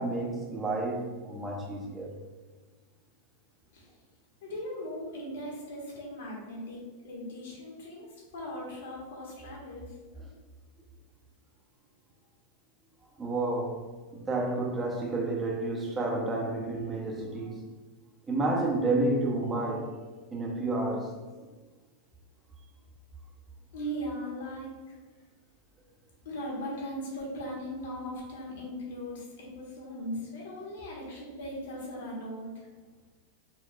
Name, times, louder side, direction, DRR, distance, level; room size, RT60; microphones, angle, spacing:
voice 1, 0.0-2.2 13.2-13.8 14.1-17.6 18.3-19.9 20.3-21.2, right 2 dB, 15° right, 0.7 m, -30 dB
voice 2, 4.4-9.9 23.7-24.7 26.2-32.7, equal, 85° left, 1.5 m, -39 dB
4.6 x 3.6 x 2.4 m
supercardioid pair, 150°, 0 cm